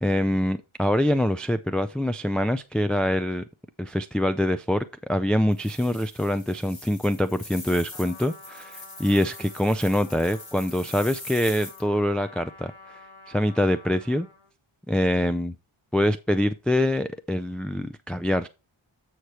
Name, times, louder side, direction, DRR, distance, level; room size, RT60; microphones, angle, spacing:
voice 1, 0.0-3.4 3.8-12.7 13.3-14.3 14.9-15.5 15.9-18.5, left 1 dB, ahead, 0.4 m, -24 dB
sound 1, 5.5-11.8, left 2 dB, 45° left, 2.7 m, -42 dB
Trumpet, 7.9-14.5, left 3 dB, 75° left, 1.6 m, -49 dB
7.9 x 4.9 x 4.3 m
wide cardioid pair, 60°, 49 cm